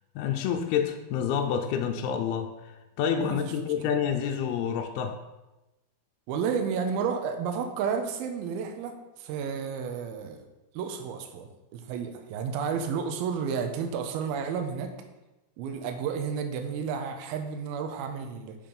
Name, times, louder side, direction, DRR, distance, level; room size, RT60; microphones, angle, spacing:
voice 1, 0.2-5.2, left 8 dB, 80° left, 4 dB, 2.4 m, -28 dB
voice 2, 3.2-3.5 3.8-3.9 6.3-10.4 10.7-14.9 15.6-18.6, right 6 dB, 80° right, 5 dB, 2.4 m, -31 dB
7.1 x 5.6 x 5.3 m, 1.0 s
omnidirectional pair, 5.0 m